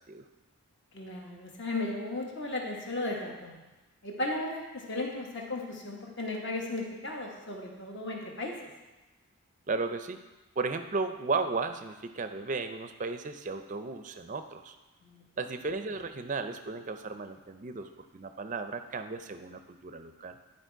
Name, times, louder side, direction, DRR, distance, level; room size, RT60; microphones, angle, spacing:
voice 1, 0.9-3.6 4.0-8.6 15.0-15.2, left 2 dB, 55° left, 0 dB, 1.3 m, -35 dB
voice 2, 9.7-10.2 10.6-14.8 15.4-20.4, right 4 dB, 35° right, 9 dB, 0.4 m, -35 dB
11.5 x 4.3 x 4.6 m, 1.1 s
head